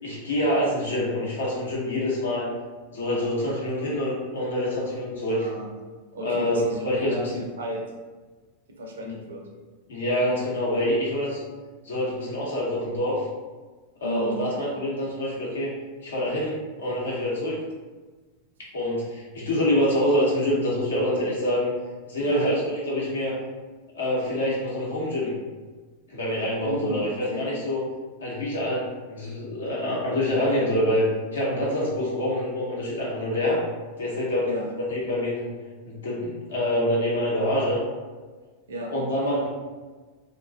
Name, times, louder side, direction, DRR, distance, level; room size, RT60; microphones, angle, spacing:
voice 1, 0.0-2.5 2.9-5.5 6.2-6.6 6.8-7.3 9.0-9.1 9.9-11.4 11.8-13.2 14.0-15.7 16.0-17.6 18.7-21.7 22.1-23.3 23.9-25.3 26.1-27.8 28.2-31.1 31.3-33.6 34.0-34.5 34.9-35.5 35.9-37.8 38.9-39.5, left 1 dB, 70° left, -6 dB, 0.8 m, -26 dB
voice 2, 5.3-5.7 6.1-7.9 8.8-9.5 14.0-14.7 22.2-22.5 26.6-27.5 34.5-34.7 38.4-38.9, equal, 65° right, 0 dB, 0.4 m, -33 dB
2.4 x 2.2 x 2.3 m, 1.3 s
figure-of-eight pair, 90°, 0 cm